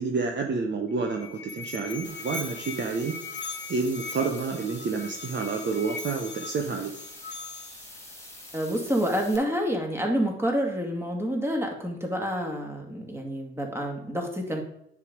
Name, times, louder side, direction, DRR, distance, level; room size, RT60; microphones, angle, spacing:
voice 1, 0.0-3.1 3.7-6.9, right 4 dB, 35° right, 2 dB, 1.0 m, -29 dB
Musical instrument, 0.9-7.9, left 4 dB, 35° left, 1.2 m, -40 dB
sound 1, 2.0-9.4, left 1 dB, 10° left, 2.5 m, -45 dB
voice 2, 8.5-14.6, equal, 10° right, 1 dB, 2.2 m, -28 dB
9.5 x 3.6 x 5.2 m, 0.79 s
hypercardioid pair, 50°, 30 cm